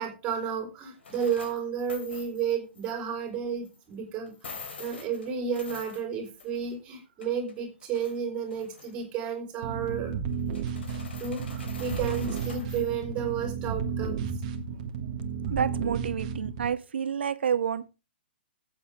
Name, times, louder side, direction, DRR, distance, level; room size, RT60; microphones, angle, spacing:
voice 1, 0.0-10.1 11.2-14.3, right 7 dB, 15° right, 3.9 m, -32 dB
sound 1, 1.0-2.9 3.6-3.8 4.3-6.7 7.0-8.2 8.5-9.0 10.3-12.9, left 5 dB, 80° left, 3.4 m, -45 dB
sound 2, 9.6-16.7, right 6 dB, 35° right, 1.5 m, -33 dB
voice 2, 15.5-17.9, right 7 dB, 75° right, 1.1 m, -29 dB
14.5 x 7.9 x 3.5 m
hypercardioid pair, 165°, 6 cm